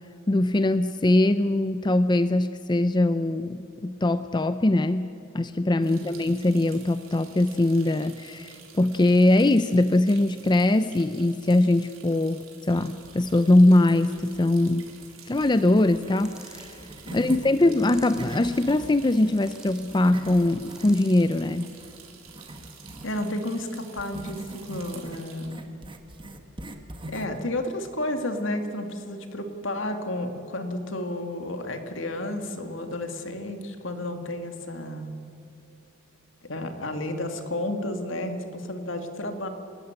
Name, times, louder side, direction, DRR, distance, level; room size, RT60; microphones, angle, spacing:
voice 1, 0.3-14.9 15.3-16.8 17.1-21.7, left 1 dB, 20° left, 11 dB, 0.5 m, -22 dB
sound 1, 5.8-25.5, right 7 dB, 85° right, 3.8 m, -50 dB
sound 2, 13.0-13.8 14.2-17.5 17.9-23.2 24.0-27.4, right 1 dB, 25° right, 1.5 m, -43 dB
sound 3, 16.2-16.8 17.5-18.4 19.1-19.9 20.5-21.3, right 1 dB, 5° right, 2.8 m, -48 dB
voice 2, 17.1-17.4 23.0-25.7 27.1-35.1 36.4-39.5, left 1 dB, 65° left, 6 dB, 2.3 m, -32 dB
28.5 x 13.5 x 9.6 m, 2.8 s
head